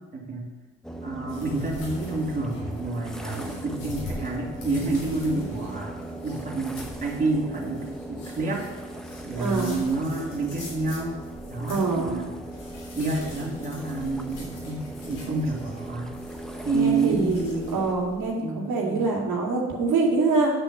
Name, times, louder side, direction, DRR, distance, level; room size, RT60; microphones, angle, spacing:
voice 1, 0.1-0.5 1.0-8.7 9.2-11.2 11.5-12.3 12.9-16.1 16.6-17.9 18.4-19.0, right 3 dB, 30° right, -3 dB, 2.6 m, -29 dB
sound 1, 0.8-18.0, right 1 dB, ahead, 0.8 m, -39 dB
sound 2, 1.3-18.3, left 2 dB, 85° left, 3.5 m, -43 dB
voice 2, 9.3-9.8 11.7-12.2 16.7-17.4 17.7-20.5, right 3 dB, 80° right, -3 dB, 2.3 m, -25 dB
9.0 x 5.2 x 7.1 m, 1.3 s
cardioid pair, 90°, 30 cm